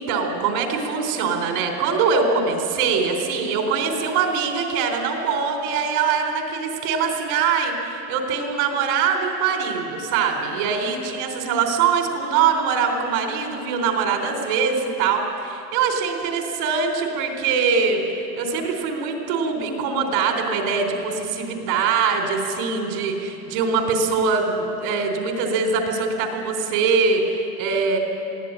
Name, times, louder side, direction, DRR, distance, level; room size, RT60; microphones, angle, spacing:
voice 1, 0.0-18.0 18.4-28.0, right 5 dB, 55° right, 3 dB, 4.0 m, -23 dB
22.0 x 16.5 x 8.9 m, 2.8 s
supercardioid pair, 155°, 50 cm